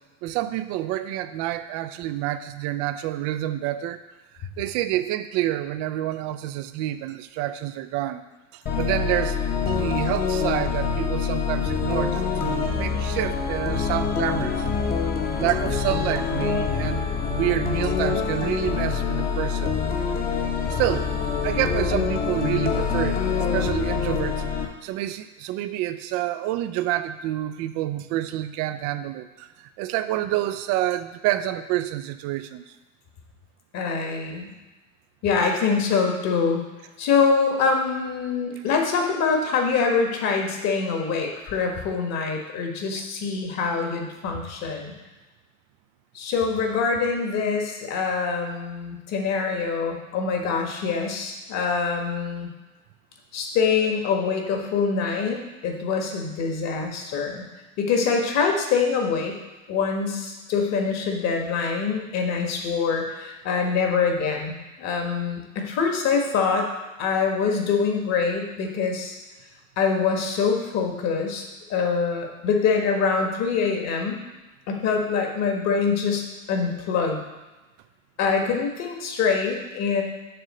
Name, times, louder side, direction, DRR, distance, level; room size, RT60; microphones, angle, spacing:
voice 1, 0.2-4.0 4.4-8.2 8.5-9.4 9.7-14.6 15.4-19.8 20.7-21.1 21.4-23.2 23.5-32.6, right 14 dB, 40° right, 11 dB, 0.4 m, -28 dB
sound 1, 8.7-24.7, left 6 dB, 25° left, 1.0 m, -25 dB
voice 2, 33.7-34.5 35.2-36.6 37.0-44.9 46.1-52.5 53.3-57.4 57.8-59.4 59.7-66.7 67.0-69.1 69.8-71.4 71.7-74.2 74.7-77.2 78.2-80.0, left 5 dB, 40° left, 2 dB, 1.5 m, -24 dB
6.8 x 3.7 x 6.2 m, 1.1 s
hypercardioid pair, 95°, 41 cm